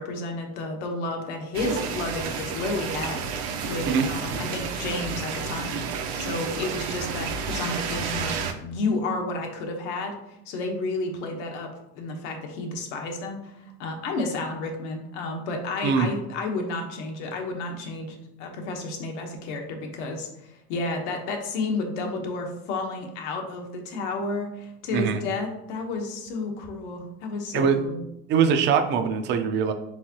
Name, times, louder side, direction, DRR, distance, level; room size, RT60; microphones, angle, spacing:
voice 1, 0.0-3.2 3.6-5.8 6.2-10.1 10.5-28.0, left 2 dB, 75° left, 3 dB, 1.1 m, -31 dB
sound 1, 1.5-8.5, right 6 dB, 70° right, 0.7 m, -31 dB
voice 2, 28.3-29.7, right 6 dB, 30° right, 7 dB, 0.4 m, -22 dB
4.7 x 3.6 x 2.8 m, 0.83 s
supercardioid pair, 120°, 35 cm